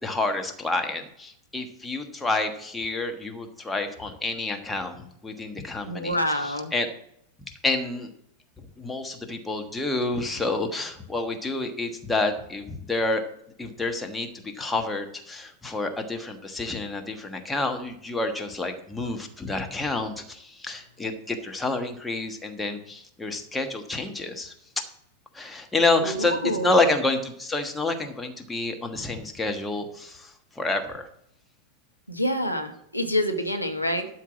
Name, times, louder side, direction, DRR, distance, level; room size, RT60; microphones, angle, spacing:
voice 1, 0.0-6.2 6.4-6.9 7.6-8.1 8.8-13.2 13.6-14.3 14.6-24.8 25.3-31.1, left 2 dB, 10° left, 4 dB, 1.3 m, -28 dB
voice 2, 5.8-6.7 26.0-26.9 32.1-34.1, equal, 90° left, 4 dB, 1.1 m, -27 dB
12.0 x 4.6 x 7.2 m, 0.75 s
figure-of-eight pair, 90°, 0 cm